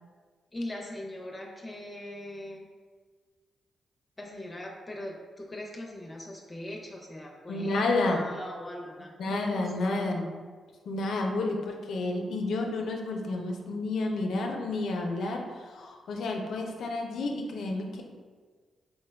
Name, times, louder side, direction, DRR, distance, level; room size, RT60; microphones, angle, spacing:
voice 1, 0.5-2.7 4.2-10.1, left 1 dB, 25° left, -1 dB, 0.7 m, -41 dB
voice 2, 7.5-8.2 9.2-10.3 10.9-18.0, left 2 dB, 75° left, 2 dB, 0.5 m, -30 dB
4.4 x 2.2 x 3.4 m, 1.5 s
cardioid pair, 60°, 0 cm